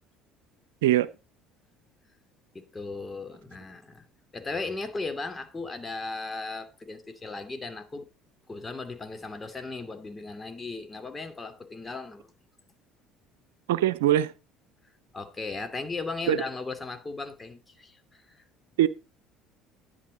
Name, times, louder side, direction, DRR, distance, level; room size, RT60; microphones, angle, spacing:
voice 1, 2.5-4.1 4.3-8.1 8.5-12.3 15.1-18.4, left 3 dB, 20° left, 2.6 m, -37 dB
voice 2, 13.7-14.3 16.3-16.4 18.8-18.9, right 13 dB, 80° right, 0.8 m, -21 dB
11.5 x 10.0 x 3.9 m
hypercardioid pair, 65°, 0 cm